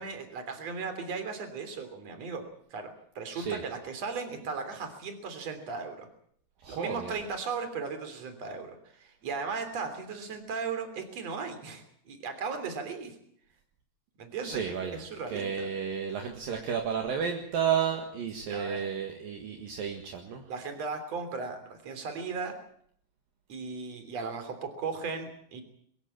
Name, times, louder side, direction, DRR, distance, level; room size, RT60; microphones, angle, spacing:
voice 1, 0.0-6.1 6.7-13.2 14.2-15.7 18.5-18.9 20.5-22.6 23.5-25.6, right 5 dB, 40° right, 7 dB, 4.1 m, -37 dB
voice 2, 6.6-7.1 14.4-15.0 15.3-20.4, right 7 dB, 65° right, 3 dB, 3.3 m, -32 dB
22.5 x 15.0 x 8.6 m, 0.65 s
omnidirectional pair, 4.7 m